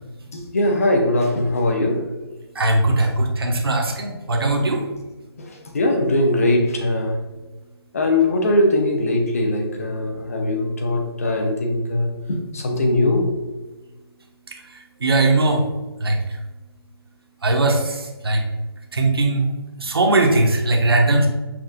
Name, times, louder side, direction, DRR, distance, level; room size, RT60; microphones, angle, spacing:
voice 1, 0.3-2.1 5.4-7.2 7.9-13.3, left 1 dB, 35° left, 2 dB, 0.6 m, -21 dB
voice 2, 2.5-4.8 14.7-15.7 16.0-16.2 17.4-18.4 18.9-19.5 19.8-21.3, right 2 dB, 65° right, 2 dB, 0.8 m, -19 dB
5.9 x 2.3 x 2.6 m, 1.2 s
hypercardioid pair, 170°, 14 cm